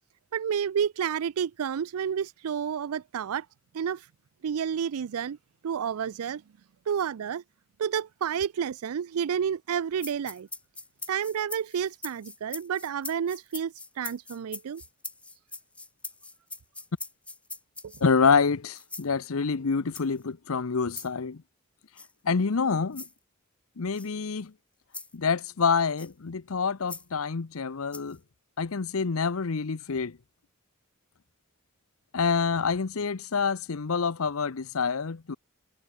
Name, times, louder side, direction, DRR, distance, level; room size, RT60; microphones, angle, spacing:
voice 1, 0.3-3.5 3.7-4.1 4.4-5.4 5.6-6.4 6.9-7.4 7.8-10.5 11.1-14.8 17.8-18.0, right 8 dB, 75° right, 0.4 m, -30 dB
sound 1, 10.0-18.2 18.7-19.1 19.9-20.2 20.9-21.1 22.0-22.1 22.9-23.1 23.9-24.1 24.9-25.1 26.0-26.1 26.9-27.1 27.9-28.2, left 3 dB, 5° left, 0.3 m, -41 dB
voice 2, 18.0-21.4 22.2-23.0 23.8-24.5 25.1-28.2 28.6-30.2 32.1-35.3, left 5 dB, 70° left, 0.7 m, -27 dB
head